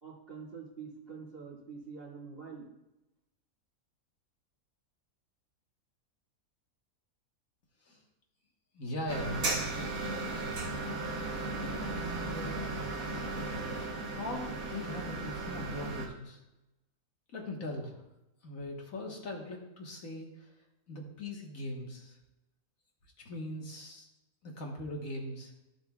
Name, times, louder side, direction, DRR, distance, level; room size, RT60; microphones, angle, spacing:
voice 1, 0.0-2.7, right 5 dB, 40° right, -5 dB, 2.4 m, -46 dB
voice 2, 8.7-9.7 11.8-12.7 14.2-16.4 17.3-18.0 18.4-20.3 20.9-22.2 23.3-24.1 24.4-25.5, left 1 dB, 65° left, 0 dB, 1.8 m, -40 dB
sound 1, 9.1-16.1, right 2 dB, 70° right, 1.7 m, -36 dB
13.0 x 7.6 x 2.4 m, 0.94 s
omnidirectional pair, 1.5 m